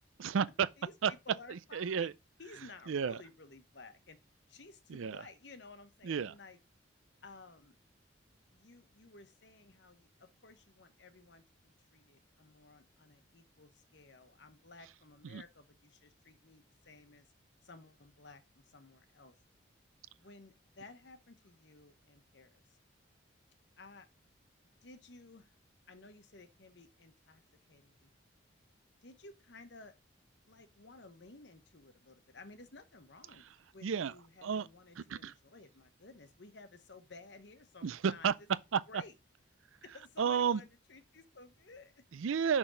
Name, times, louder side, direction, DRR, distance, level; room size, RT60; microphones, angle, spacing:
voice 1, 0.2-0.7 1.0-1.1 1.5-2.1 2.9-3.2 4.9-5.2 6.0-6.3 15.3-15.4 33.8-34.1 34.4-34.7 35.0-35.3 37.8-38.3 38.7-38.8 40.2-40.6 42.1-42.6, right 7 dB, 85° right, 0.4 m, -32 dB
voice 2, 0.8-2.1 2.4-4.2 4.5-6.6 7.2-7.7 8.5-17.3 17.6-19.3 20.2-22.8 23.8-24.1 24.8-25.5 25.9-27.4 27.7-28.1 29.0-29.9 30.5-33.5 33.7-38.3 38.9-39.1 39.8-42.0, left 3 dB, 60° left, 1.0 m, -55 dB
6.3 x 6.0 x 3.9 m
head